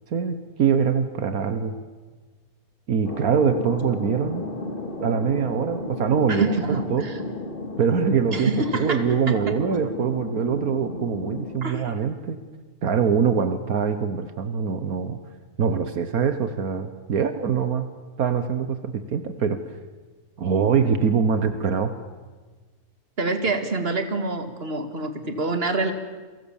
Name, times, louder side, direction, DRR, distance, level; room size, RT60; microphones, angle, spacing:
voice 1, 0.1-1.7 2.9-4.5 5.0-7.1 7.8-8.5 8.8-12.4 12.8-15.2 15.6-17.9 18.2-19.6 20.4-21.9, right 6 dB, 75° right, 10 dB, 1.7 m, -23 dB
Thunder, 3.0-12.4, left 2 dB, 35° left, 2.8 m, -34 dB
voice 2, 6.3-7.2 8.3-9.6 11.6-12.0 23.2-25.9, right 3 dB, 40° right, 8 dB, 2.4 m, -27 dB
29.5 x 23.5 x 7.3 m, 1.3 s
omnidirectional pair, 1.5 m